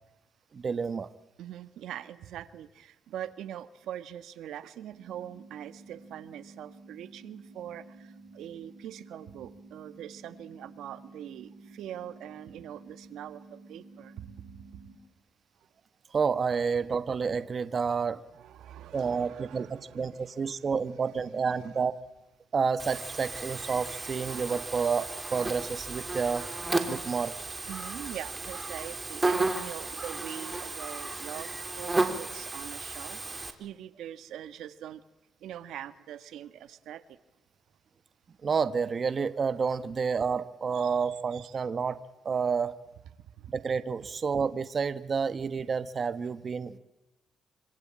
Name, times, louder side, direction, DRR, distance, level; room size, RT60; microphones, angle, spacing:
voice 1, 0.5-1.1 16.1-18.2 18.9-22.0 22.5-26.5 26.9-27.3 38.4-42.0 42.2-42.7 43.5-46.8, right 5 dB, 40° right, 12 dB, 1.3 m, -29 dB
voice 2, 1.4-14.2 18.3-20.8 21.1-21.9 27.7-31.5 31.8-33.2 33.6-35.0 35.4-37.2 40.7-41.6 43.2-43.5, right 11 dB, 85° right, 12 dB, 1.5 m, -43 dB
sound 1, 4.9-14.9, right 3 dB, 55° right, 4.7 m, -52 dB
Buzz, 22.8-33.5, right 2 dB, 20° right, 3.4 m, -33 dB
26.0 x 26.0 x 8.8 m, 1.0 s
cardioid pair, 105°, 0 cm